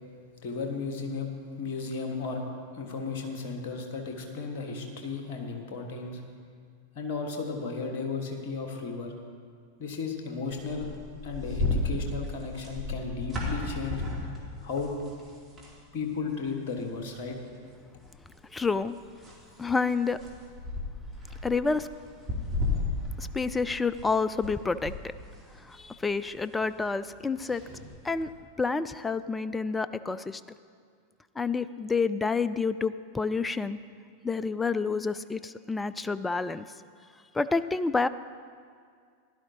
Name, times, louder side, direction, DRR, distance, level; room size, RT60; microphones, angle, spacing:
voice 1, 0.4-1.3 1.6-2.4 2.7-6.2 6.9-9.1 9.8-10.9 11.2-14.0 14.6-14.9 15.9-17.4, left 4 dB, 45° left, 3 dB, 1.5 m, -34 dB
sound 1, 10.5-15.8 16.1-16.3 16.6-17.5 18.0-24.5 24.8-28.2, left 2 dB, 10° right, 2.9 m, -34 dB
voice 2, 18.5-18.9 19.6-20.2 21.4-21.9 23.2-25.1 25.5-27.6 28.0-28.3 28.6-30.4 31.4-33.8 34.2-36.6 37.3-38.1, left 4 dB, 10° left, 14 dB, 0.3 m, -29 dB
16.0 x 11.5 x 2.9 m, 2.1 s
figure-of-eight pair, 90°, 0 cm